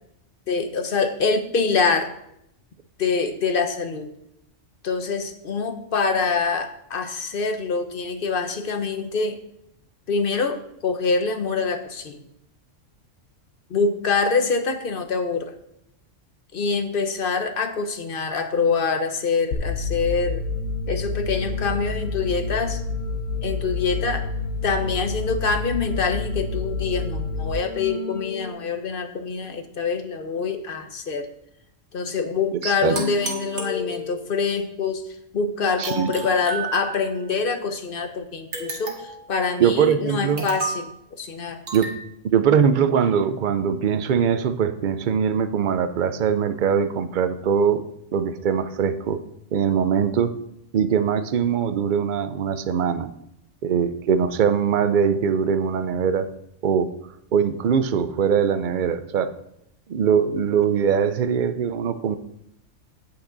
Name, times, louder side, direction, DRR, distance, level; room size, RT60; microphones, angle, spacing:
voice 1, 0.5-2.1 3.0-4.1 4.8-9.4 10.1-12.2 13.7-15.6 16.5-20.4 20.9-22.8 23.4-24.3 24.6-31.3 31.9-35.1 35.3-41.6, left 4 dB, 50° left, 7 dB, 1.0 m, -25 dB
sound 1, 19.5-28.5, left 3 dB, 80° left, 1.4 m, -29 dB
voice 2, 32.6-32.9 35.8-36.1 39.6-40.5 41.7-41.9 42.2-47.8 48.1-49.2 49.5-50.3 50.7-53.1 53.6-56.2 56.6-56.9 57.3-59.3 59.9-62.2, right 7 dB, 50° right, 10 dB, 0.6 m, -21 dB
sound 2, 32.9-34.4 35.8-37.3 38.5-39.3 40.4-40.9 41.7-42.0, right 3 dB, 85° right, 1.8 m, -32 dB
8.6 x 8.5 x 3.9 m, 0.76 s
omnidirectional pair, 1.3 m